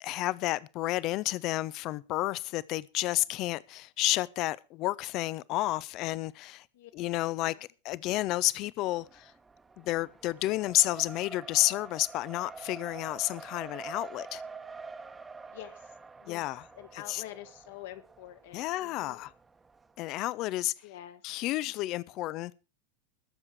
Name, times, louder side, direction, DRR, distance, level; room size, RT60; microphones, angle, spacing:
voice 1, 0.0-6.6 6.9-7.5 7.8-9.3 9.8-14.4 16.3-16.6 17.1-17.2 18.5-19.3 20.0-20.7 21.2-22.5, left 17 dB, 45° left, 0.6 m, -31 dB
voice 2, 7.2-7.7 15.5-15.9 16.2-19.3 20.8-21.2, left 13 dB, 65° left, 1.8 m, -47 dB
Race car auto racing, 8.9-19.9, right 4 dB, 15° right, 1.1 m, -47 dB
21.0 x 7.3 x 4.6 m
figure-of-eight pair, 90°, 0 cm